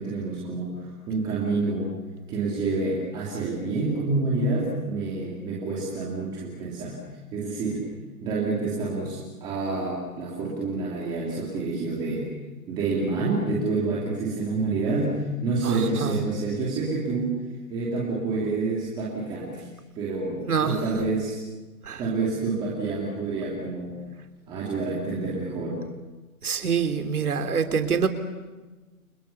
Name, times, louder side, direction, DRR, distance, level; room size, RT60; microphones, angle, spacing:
voice 1, 0.0-1.9 2.3-7.0 7.3-7.9 8.2-12.3 12.7-17.3 17.7-19.7 19.9-21.4 22.0-23.9 24.5-25.8, right 3 dB, 10° right, -5 dB, 3.1 m, -28 dB
voice 2, 15.6-16.2 20.5-21.0 21.8-22.0 26.4-28.1, right 6 dB, 80° right, 7 dB, 3.7 m, -26 dB
30.0 x 27.5 x 7.2 m, 1.2 s
hypercardioid pair, 180°, 44 cm